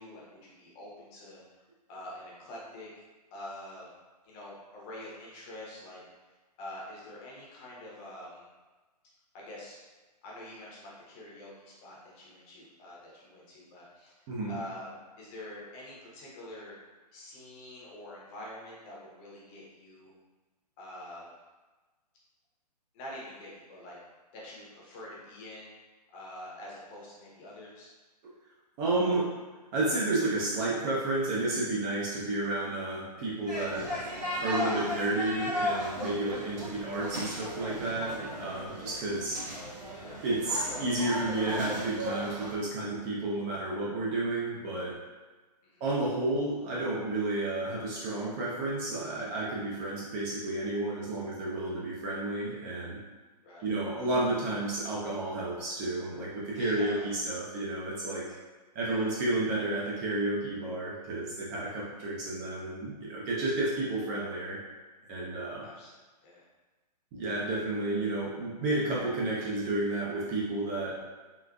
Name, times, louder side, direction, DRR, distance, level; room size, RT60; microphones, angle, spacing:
voice 1, 0.0-1.4 1.9-3.0 3.3-3.9 4.2-6.0 6.6-8.5 9.3-9.8 10.2-14.9 15.2-16.8 17.1-20.1 20.8-21.3 22.9-24.0 24.3-25.7 26.1-27.9 36.1-36.3 45.6-45.8 53.4-53.7 56.5-57.1 58.8-59.0 65.6-65.9 66.2-66.4, left 1 dB, 25° left, -5 dB, 0.7 m, -46 dB
voice 2, 14.3-14.6 28.8-29.3 29.7-33.9 34.4-39.4 40.2-45.0 45.8-53.0 53.6-58.3 58.7-64.6 65.0-65.7 67.1-71.0, right 2 dB, 25° right, -5 dB, 0.5 m, -31 dB
sound 1, 33.5-42.5, equal, 85° right, 1.0 m, -36 dB
3.7 x 2.5 x 2.3 m, 1.3 s
hypercardioid pair, 135°, 21 cm